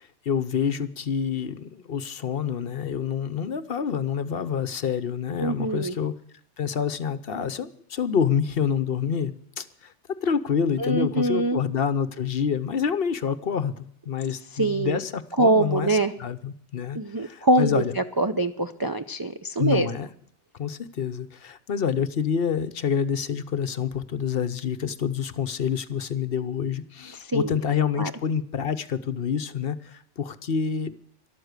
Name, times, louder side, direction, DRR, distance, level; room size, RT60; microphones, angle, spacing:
voice 1, 0.0-6.1 6.6-9.9 10.2-17.9 19.6-20.1 20.5-30.9, left 7 dB, 60° left, 14 dB, 0.9 m, -27 dB
voice 2, 5.4-6.0 10.8-11.6 14.6-15.0 15.4-16.1 16.9-19.9 27.2-27.6 28.0-28.1, right 2 dB, 35° right, 7 dB, 0.4 m, -24 dB
13.0 x 12.0 x 6.6 m, 0.64 s
omnidirectional pair, 1.2 m